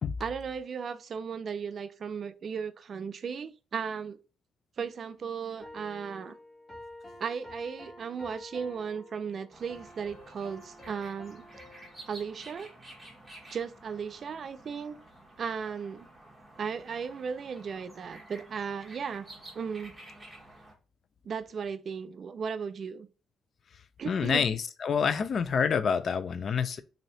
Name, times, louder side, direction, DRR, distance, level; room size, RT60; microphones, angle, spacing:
voice 1, 0.2-4.2 4.8-6.3 7.2-11.4 12.1-12.7 13.5-15.0 15.4-16.1 16.6-19.3 19.6-19.9 21.2-23.1 24.0-24.5, right 6 dB, 50° right, 0.3 m, -36 dB
sound 1, 5.6-12.9, left 1 dB, 35° left, 1.4 m, -50 dB
sound 2, 9.5-20.7, right 1 dB, 15° right, 1.1 m, -51 dB
voice 2, 24.1-26.8, left 6 dB, 50° left, 0.3 m, -27 dB
3.1 x 2.7 x 2.6 m
cardioid pair, 90°, 0 cm